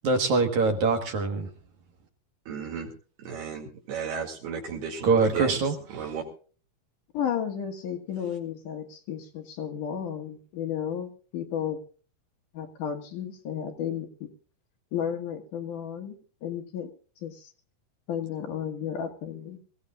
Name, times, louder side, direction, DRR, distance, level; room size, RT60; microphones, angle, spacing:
voice 1, 0.0-1.5 5.0-6.1, right 4 dB, 60° right, 5 dB, 2.4 m, -24 dB
voice 2, 2.5-2.9 3.2-5.6 5.9-6.2, right 6 dB, 85° right, 0 dB, 4.2 m, -34 dB
voice 3, 7.1-11.8 12.5-14.3 14.9-16.2 16.4-16.9 17.2-17.5 18.1-19.6, left 8 dB, 60° left, 4 dB, 2.8 m, -33 dB
24.5 x 15.5 x 2.4 m, 0.38 s
omnidirectional pair, 4.5 m